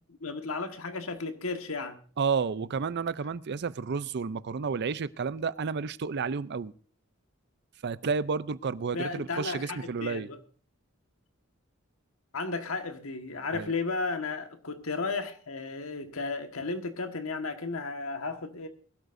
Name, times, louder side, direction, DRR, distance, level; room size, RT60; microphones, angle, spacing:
voice 1, 0.2-2.0 8.9-10.4 12.3-18.7, left 3 dB, 80° left, 1.6 m, -34 dB
voice 2, 2.2-6.7 7.8-10.3 13.5-13.7, right 5 dB, 55° right, 0.5 m, -31 dB
22.0 x 12.5 x 2.6 m
head